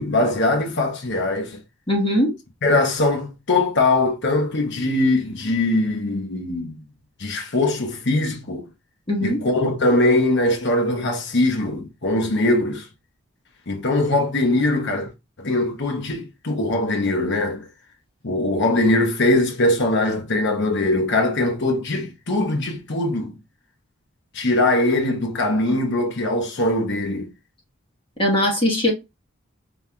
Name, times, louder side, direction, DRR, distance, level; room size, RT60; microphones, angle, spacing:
voice 1, 0.0-1.6 2.6-6.7 7.2-8.7 9.2-12.9 13.7-15.1 15.4-17.7 18.2-23.4 24.3-27.3, left 2 dB, 55° left, 1.0 m, -21 dB
voice 2, 1.9-2.3 9.1-9.4 28.2-28.9, left 1 dB, 25° left, 1.3 m, -20 dB
5.4 x 3.0 x 2.2 m
head